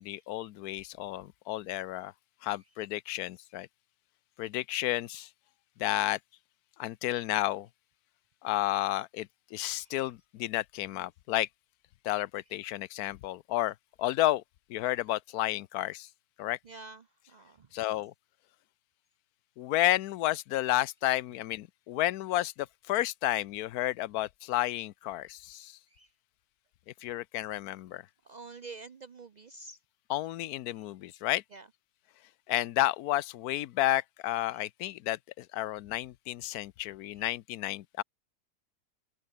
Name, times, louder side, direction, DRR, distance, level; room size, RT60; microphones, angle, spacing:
voice 1, 0.0-2.1 2.4-3.7 4.4-5.3 5.8-6.2 6.8-7.7 8.4-11.5 12.0-14.4 14.7-16.1 16.4-16.6 17.7-18.1 19.6-25.8 27.0-28.0 30.1-31.4 32.5-38.0, left 15 dB, 70° left, 1.1 m, -31 dB
voice 2, 16.6-17.7 25.9-26.1 28.2-29.8 31.5-31.7 34.5-34.6 37.1-37.3, right 3 dB, 75° right, 0.4 m, -48 dB
omnidirectional pair, 1.8 m